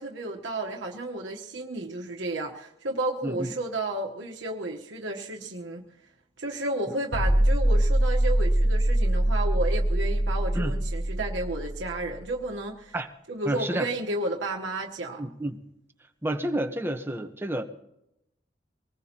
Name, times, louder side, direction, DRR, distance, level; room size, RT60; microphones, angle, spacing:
voice 1, 0.0-5.9 6.4-12.9 13.3-15.2, right 2 dB, 90° right, 1 dB, 1.2 m, -32 dB
voice 2, 3.2-3.5 10.5-10.7 12.9-13.1 13.4-13.9 15.2-15.6 16.2-17.6, right 1 dB, 10° right, 5 dB, 1.0 m, -30 dB
sound 1, 7.1-12.2, right 1 dB, 80° left, 6.9 m, -23 dB
24.5 x 19.5 x 2.9 m, 0.82 s
head